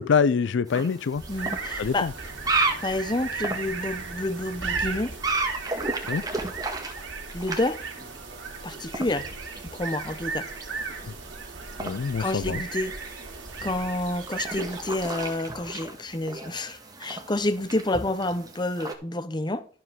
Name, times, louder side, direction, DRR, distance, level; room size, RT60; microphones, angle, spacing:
voice 1, 0.0-1.2 1.8-2.1 6.1-6.2 11.8-12.6, left 6 dB, 70° left, 0.4 m, -25 dB
sound 1, 0.7-18.9, right 3 dB, 20° right, 1.6 m, -35 dB
sound 2, 1.1-15.5, right 4 dB, 80° right, 2.6 m, -36 dB
voice 2, 1.3-2.1 2.8-5.1 7.3-7.8 8.6-9.3 9.7-10.5 12.2-12.9 13.6-19.7, left 1 dB, 25° left, 0.8 m, -29 dB
12.5 x 7.4 x 3.7 m
head